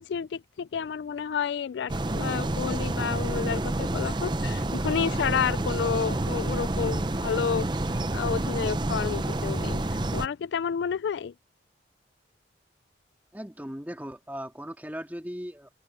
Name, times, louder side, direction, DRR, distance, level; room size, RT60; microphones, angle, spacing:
voice 1, 0.0-11.3, left 7 dB, 85° left, 0.3 m, -30 dB
sound 1, 1.9-10.3, right 2 dB, 25° right, 0.7 m, -29 dB
voice 2, 13.3-15.7, equal, 10° right, 1.9 m, -38 dB
head